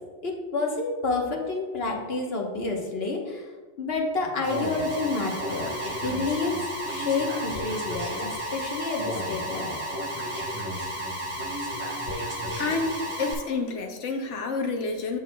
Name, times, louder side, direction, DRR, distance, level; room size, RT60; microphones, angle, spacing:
voice 1, 0.2-3.5 3.8-5.7 6.0-9.8, left 3 dB, 60° left, 0 dB, 1.3 m, -29 dB
Alarm, 4.4-13.3, equal, 30° right, 1.7 m, -32 dB
voice 2, 12.6-15.2, left 3 dB, 85° left, 3 dB, 1.2 m, -29 dB
9.2 x 6.1 x 2.2 m, 1.4 s
omnidirectional pair, 1.2 m